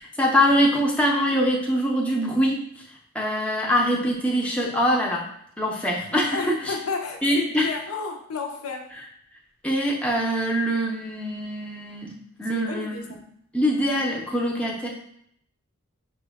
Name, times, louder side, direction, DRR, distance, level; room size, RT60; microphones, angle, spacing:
voice 1, 0.0-2.6 3.1-5.3 5.6-6.8 7.2-7.7 9.6-12.1 12.4-13.0 13.5-14.9, equal, 5° left, -2 dB, 0.5 m, -23 dB
voice 2, 6.3-8.9 12.5-13.2, left 4 dB, 90° left, 3 dB, 0.6 m, -32 dB
5.8 x 2.2 x 3.4 m, 0.68 s
head